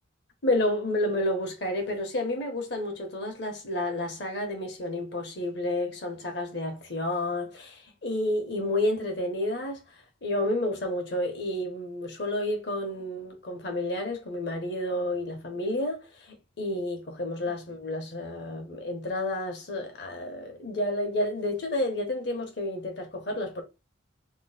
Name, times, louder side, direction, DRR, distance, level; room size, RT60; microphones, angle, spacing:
voice 1, 0.4-9.8 10.2-16.0 16.3-23.6, left 1 dB, 60° left, 1.0 m, -30 dB
3.0 x 2.1 x 4.0 m
head